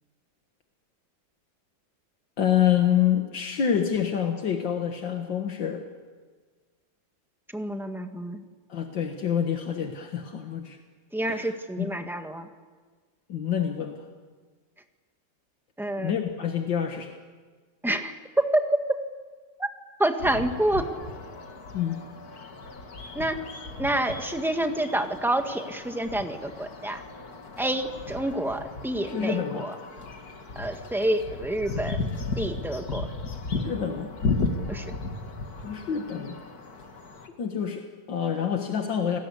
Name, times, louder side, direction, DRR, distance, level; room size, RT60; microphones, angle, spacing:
voice 1, 2.4-5.8 8.7-10.8 11.3-11.9 13.3-14.0 16.0-17.2 21.7-22.1 29.1-29.7 33.6-34.1 35.6-36.4 37.3-39.2, left 9 dB, 75° left, 4 dB, 2.2 m, -27 dB
voice 2, 7.5-8.4 11.1-12.5 15.8-16.1 17.8-18.6 19.6-19.7 20.0-20.8 23.1-23.4 23.8-27.0 27.6-29.7 30.5-32.0 32.4-33.1 34.7-34.9, right 1 dB, ahead, 5 dB, 1.5 m, -28 dB
sound 1, 20.2-37.3, left 3 dB, 55° left, 2.4 m, -35 dB
29.0 x 20.0 x 8.5 m, 1.5 s
omnidirectional pair, 2.0 m